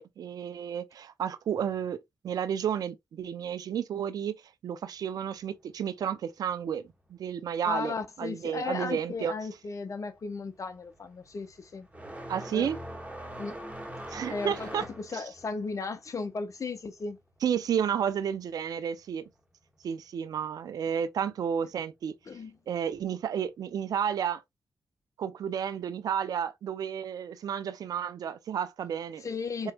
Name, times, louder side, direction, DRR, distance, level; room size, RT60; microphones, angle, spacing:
voice 1, 0.0-2.0 2.2-4.3 4.6-6.8 7.1-9.3 12.3-12.8 14.1-14.8 15.1-15.2 17.4-19.3 19.8-22.1 22.7-24.4 25.2-29.2 29.6-29.7, right 8 dB, 75° right, 0.5 m, -31 dB
voice 2, 7.6-11.9 12.5-12.7 13.4-13.6 14.3-17.2 22.3-22.6 29.2-29.7, left 4 dB, 55° left, 0.9 m, -35 dB
sound 1, 9.3-9.7 10.0-18.3 18.6-19.6 20.6-20.7 21.5-21.6 23.4-23.5, right 1 dB, 20° right, 1.7 m, -43 dB
4.4 x 3.1 x 2.3 m
supercardioid pair, 40°, 6 cm